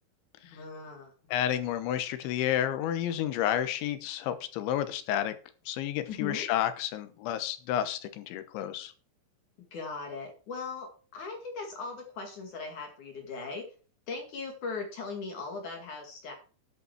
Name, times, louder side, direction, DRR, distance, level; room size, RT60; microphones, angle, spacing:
voice 1, 0.5-1.1 6.1-6.5 9.7-13.7 14.1-16.3, left 4 dB, 50° left, 2 dB, 3.1 m, -39 dB
voice 2, 1.3-5.4 5.7-8.9, left 11 dB, 80° left, 11 dB, 3.4 m, -30 dB
11.0 x 8.3 x 4.6 m, 0.38 s
omnidirectional pair, 5.3 m